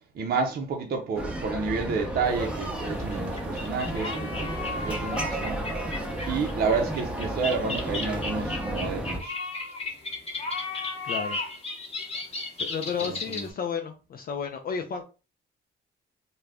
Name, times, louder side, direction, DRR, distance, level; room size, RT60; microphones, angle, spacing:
voice 1, 0.1-5.6 6.3-9.4 13.0-13.4, right 5 dB, 50° right, 0.6 m, -30 dB
sound 1, 1.1-9.2, right 1 dB, 5° right, 0.7 m, -32 dB
sound 2, 2.4-13.5, left 3 dB, 30° left, 0.9 m, -35 dB
voice 2, 11.0-11.4 12.1-12.3 12.6-15.0, left 6 dB, 50° left, 0.4 m, -32 dB
2.4 x 2.2 x 3.3 m
cardioid pair, 90°, 20 cm